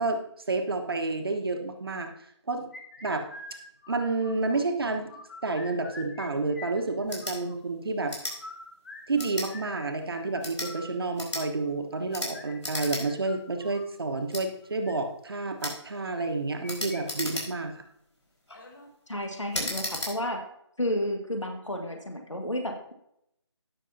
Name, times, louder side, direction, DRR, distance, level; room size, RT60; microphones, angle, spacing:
voice 1, 0.0-2.1 2.5-2.7 3.0-3.3 3.9-5.1 5.4-8.2 9.1-17.8, right 3 dB, 55° right, 5 dB, 1.2 m, -30 dB
sound 1, 2.7-4.6 5.0-6.3 6.5-7.6 8.2-13.9 14.6-14.9 16.2-17.0 17.3-17.4 17.8-17.9 18.5-18.9, left 3 dB, 40° left, 1.7 m, -46 dB
sound 2, 7.0-7.4 8.1-8.4 9.2-9.5 10.3-10.7 11.2-11.4 12.1-12.3 12.6-13.0 13.4-13.5 14.3-14.4 15.6-15.8 16.7-17.7 18.3-18.6 19.5-20.1, left 1 dB, 70° left, 4.5 m, -34 dB
voice 2, 19.1-20.4 20.8-22.9, left 1 dB, 90° left, 3 dB, 1.8 m, -31 dB
18.0 x 6.5 x 2.7 m, 0.76 s
figure-of-eight pair, 155°, 15 cm